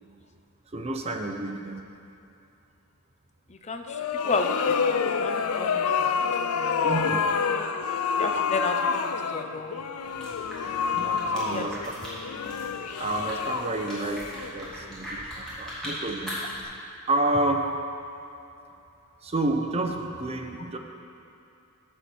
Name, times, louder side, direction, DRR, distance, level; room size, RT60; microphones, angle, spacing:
voice 1, 0.7-1.9 6.8-7.3 10.4-10.5 10.9-11.8 12.4-12.5 13.0-14.3 14.5-16.8 17.1-17.7 19.2-20.8, right 2 dB, 30° right, 4 dB, 0.6 m, -29 dB
voice 2, 3.5-7.2 7.5-7.7 8.2-9.9 10.9-11.9, left 3 dB, 30° left, 6 dB, 0.5 m, -34 dB
sound 1, 3.9-14.9, left 6 dB, 90° left, 0.4 m, -28 dB
sound 2, 10.0-16.6, equal, 5° left, 2.5 m, -40 dB
11.5 x 4.4 x 6.9 m, 2.6 s
head